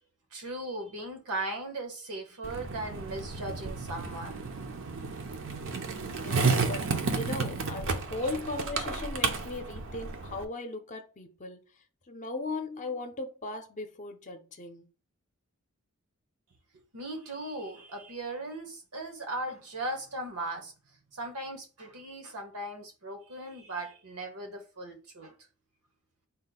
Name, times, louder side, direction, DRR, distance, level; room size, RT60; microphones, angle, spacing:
voice 1, 0.3-4.5 16.9-20.7 21.1-25.3, right 2 dB, 85° right, 1.2 m, -38 dB
Skateboard, 2.4-10.4, right 4 dB, 60° right, 0.6 m, -32 dB
voice 2, 6.2-11.6 12.1-14.9, left 2 dB, 35° left, 0.6 m, -37 dB
4.1 x 2.2 x 4.0 m
head